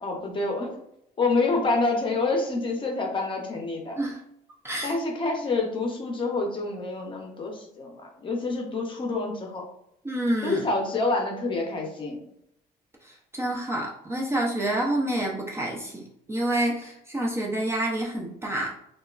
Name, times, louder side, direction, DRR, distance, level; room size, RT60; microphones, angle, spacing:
voice 1, 0.0-0.7 1.2-4.0 4.8-9.6 10.4-12.2, left 3 dB, 30° left, 1 dB, 0.7 m, -27 dB
voice 2, 4.6-5.0 10.0-10.6 13.0-18.7, right 1 dB, 15° right, -3 dB, 0.4 m, -28 dB
2.8 x 2.3 x 2.3 m, 0.78 s
cardioid pair, 110°, 17 cm